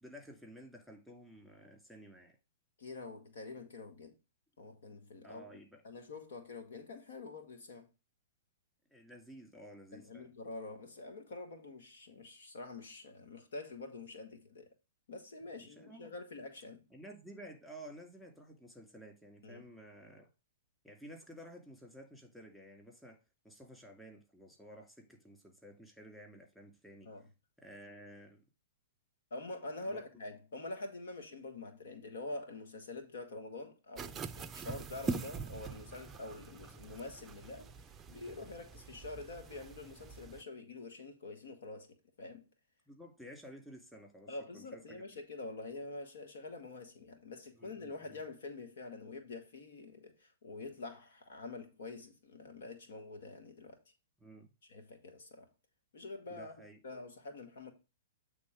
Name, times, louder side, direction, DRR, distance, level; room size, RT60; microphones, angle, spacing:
voice 1, 0.0-2.4 5.2-5.8 8.9-10.3 15.6-16.1 16.9-20.3 20.8-23.2 23.4-27.1 27.6-28.4 29.8-30.1 42.9-45.2 47.6-48.2 54.2-54.5 56.3-56.8, equal, 5° left, 2.5 m, -53 dB
voice 2, 2.8-4.1 4.6-7.9 9.9-14.7 15.1-16.8 19.4-19.6 27.1-27.2 29.3-37.7 38.1-42.5 44.3-53.8 54.7-55.5 55.9-56.5 56.8-57.7, left 3 dB, 70° left, 1.6 m, -46 dB
sound 1, 34.0-40.4, right 5 dB, 20° right, 0.5 m, -44 dB
8.5 x 3.7 x 4.9 m
hypercardioid pair, 125°, 0 cm